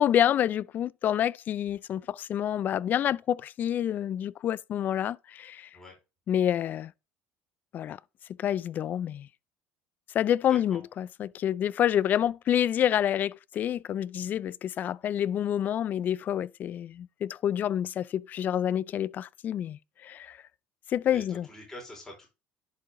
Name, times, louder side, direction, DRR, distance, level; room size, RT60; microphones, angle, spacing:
voice 1, 0.0-5.7 6.3-6.9 7.7-8.0 8.4-9.3 10.1-20.4 20.9-21.5, left 10 dB, 45° left, 0.3 m, -28 dB
voice 2, 10.5-10.8 21.0-22.3, left 1 dB, 15° left, 4.4 m, -46 dB
10.5 x 4.7 x 3.6 m
supercardioid pair, 105°, 4 cm